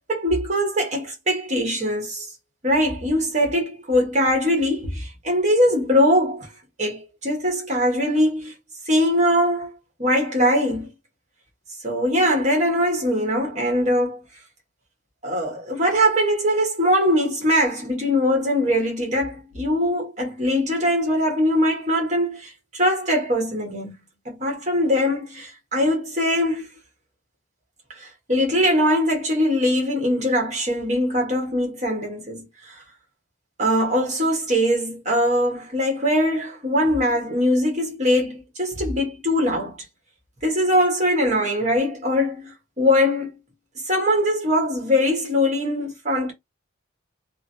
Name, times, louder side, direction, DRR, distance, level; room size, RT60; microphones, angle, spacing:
voice 1, 0.1-2.3 2.6-6.5 6.8-8.5 8.9-10.9 11.8-14.2 15.2-23.9 24.2-26.7 28.0-32.7 33.6-39.8 40.4-43.3 43.9-46.3, equal, 35° right, 1.6 m, -22 dB
3.6 x 2.2 x 2.8 m
head